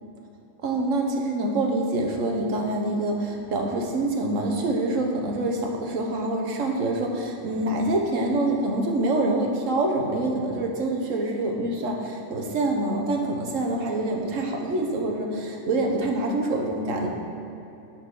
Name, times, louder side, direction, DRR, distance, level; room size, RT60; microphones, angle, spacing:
voice 1, 0.6-17.1, right 2 dB, 75° right, 1 dB, 1.4 m, -26 dB
10.0 x 4.6 x 6.3 m, 2.9 s
omnidirectional pair, 1.3 m